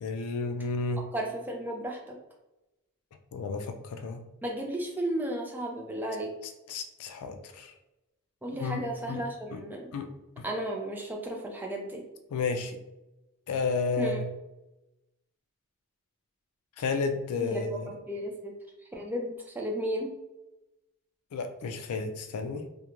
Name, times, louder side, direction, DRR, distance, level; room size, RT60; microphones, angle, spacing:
voice 1, 0.0-1.1 3.3-4.2 6.7-7.7 8.6-8.8 9.1-9.2 9.5-9.6 9.9-10.1 10.4-10.5 12.3-12.8 13.5-14.3 16.8-17.9 21.3-22.6, left 4 dB, 75° left, 6 dB, 0.4 m, -32 dB
voice 2, 1.1-2.1 4.4-6.3 8.4-9.9 10.4-12.0 14.0-14.2 17.4-17.6 17.9-18.6 18.9-20.1, right 1 dB, 10° right, 0 dB, 0.3 m, -34 dB
2.4 x 2.1 x 2.9 m, 0.99 s
head